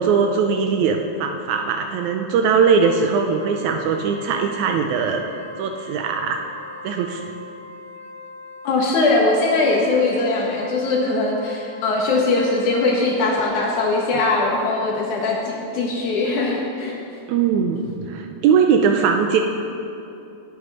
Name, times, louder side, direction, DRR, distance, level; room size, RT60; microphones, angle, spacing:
voice 1, 0.0-5.2 5.6-6.4 6.8-7.2 17.3-19.4, right 6 dB, 80° right, 4 dB, 2.0 m, -20 dB
Wind instrument woodwind instrument, 2.8-13.4, left 3 dB, 50° right, 2.6 m, -40 dB
voice 2, 8.6-17.0, left 3 dB, 80° left, -2 dB, 2.7 m, -21 dB
19.5 x 7.0 x 5.3 m, 2.7 s
omnidirectional pair, 3.4 m